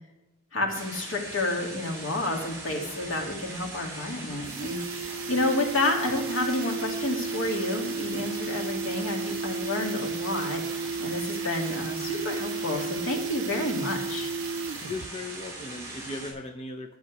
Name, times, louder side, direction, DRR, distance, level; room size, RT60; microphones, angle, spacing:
voice 1, 0.5-4.8 5.3-10.6 11.0-14.3, left 2 dB, 80° left, 1 dB, 2.5 m, -30 dB
sound 1, 0.7-16.3, right 2 dB, 15° right, 4.6 m, -40 dB
sound 2, 3.5-3.6 3.9-4.0 4.3-15.1 15.4-15.5, right 4 dB, 90° right, 0.6 m, -33 dB
voice 2, 14.8-17.0, left 2 dB, 30° left, 2 dB, 0.9 m, -37 dB
12.0 x 7.3 x 6.2 m, 1.0 s
head